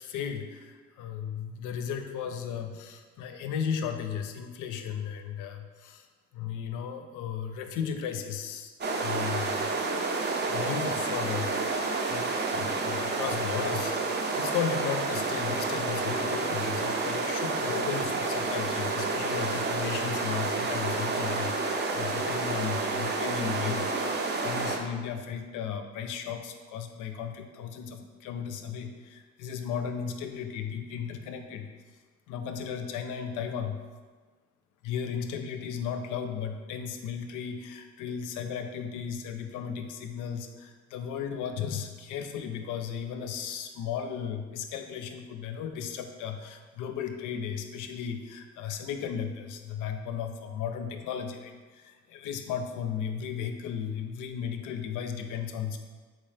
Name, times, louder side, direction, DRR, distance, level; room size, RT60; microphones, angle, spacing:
voice 1, 0.0-6.1 6.3-8.7 9.0-9.7 10.4-11.6 12.1-31.7 32.3-33.8 34.8-55.8, left 7 dB, 85° left, 6 dB, 0.5 m, -35 dB
sound 1, 8.8-24.8, right 3 dB, 35° right, 0.5 m, -30 dB
3.7 x 2.7 x 3.2 m, 1.4 s
cardioid pair, 90°, 30 cm